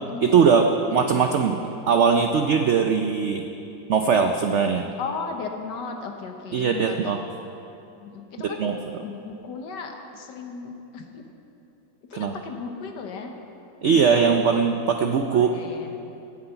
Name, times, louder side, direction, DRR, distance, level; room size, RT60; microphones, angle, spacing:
voice 1, 0.2-1.6 1.9-3.5 3.9-4.9 6.5-7.2 8.4-8.8 12.1-12.3 13.8-15.6, right 6 dB, 85° right, 5 dB, 0.6 m, -20 dB
voice 2, 1.0-1.4 5.0-7.2 8.0-8.7 9.0-11.2 12.1-13.4 13.8-14.6 15.3-15.9, left 5 dB, 75° left, 4 dB, 1.7 m, -36 dB
16.5 x 8.1 x 5.7 m, 2.9 s
omnidirectional pair, 1.9 m